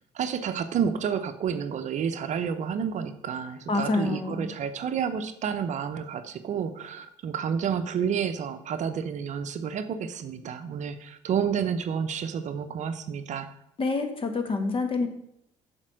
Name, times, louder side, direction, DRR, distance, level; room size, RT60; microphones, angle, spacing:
voice 1, 0.0-13.5, right 7 dB, 50° right, 9 dB, 0.7 m, -30 dB
voice 2, 3.7-4.5 13.8-15.1, left 3 dB, 35° left, 6 dB, 1.6 m, -27 dB
7.4 x 4.4 x 6.3 m, 0.78 s
hypercardioid pair, 70°, 16 cm